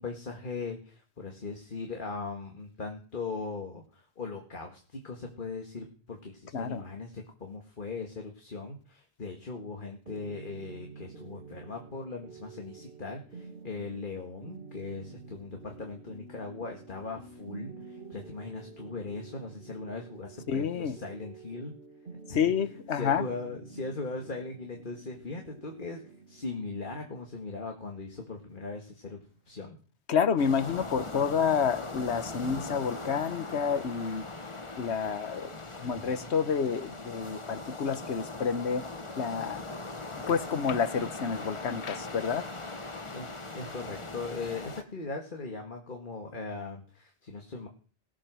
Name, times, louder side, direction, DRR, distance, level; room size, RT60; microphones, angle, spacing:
voice 1, 0.0-21.7 22.3-22.4 22.9-26.0 26.3-29.2 29.5-29.8 35.8-36.3 43.1-43.3 43.5-47.7, left 3 dB, 50° left, 1.9 m, -39 dB
sound 1, 10.0-29.6, right 5 dB, 60° right, 2.3 m, -49 dB
voice 2, 20.5-21.0 22.3-23.3 30.1-34.2 34.8-35.5 35.8-38.9 39.2-39.7 40.3-42.5, left 6 dB, 85° left, 1.3 m, -29 dB
sound 2, 30.4-44.8, left 2 dB, 30° left, 1.3 m, -40 dB
18.0 x 8.5 x 6.3 m
omnidirectional pair, 1.1 m